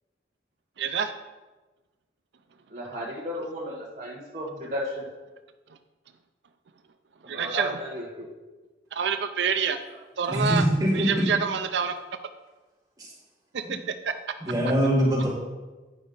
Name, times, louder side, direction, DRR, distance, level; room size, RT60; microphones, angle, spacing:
voice 1, 0.8-1.1 7.3-7.7 8.9-9.8 10.2-10.6 10.9-12.0 13.5-13.8 14.1-14.2, right 6 dB, 80° right, 9 dB, 0.5 m, -27 dB
voice 2, 2.7-5.0 7.3-8.3, equal, 45° right, -7 dB, 1.3 m, -34 dB
voice 3, 10.3-11.3 13.0-13.1 13.6-13.7 14.4-15.3, equal, 20° right, -6 dB, 2.4 m, -23 dB
9.9 x 5.2 x 5.3 m, 1.2 s
head